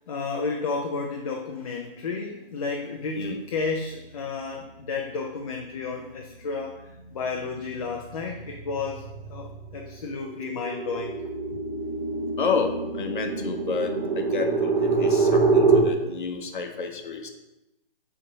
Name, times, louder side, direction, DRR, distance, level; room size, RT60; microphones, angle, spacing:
voice 1, 0.1-11.1, left 4 dB, 35° left, 1 dB, 0.6 m, -32 dB
sound 1, 6.1-6.5 6.9-15.8, right 4 dB, 35° right, 2.2 m, -26 dB
voice 2, 12.4-17.3, left 5 dB, 55° left, 5 dB, 1.0 m, -30 dB
6.6 x 3.5 x 5.3 m, 0.95 s
hypercardioid pair, 155°, 29 cm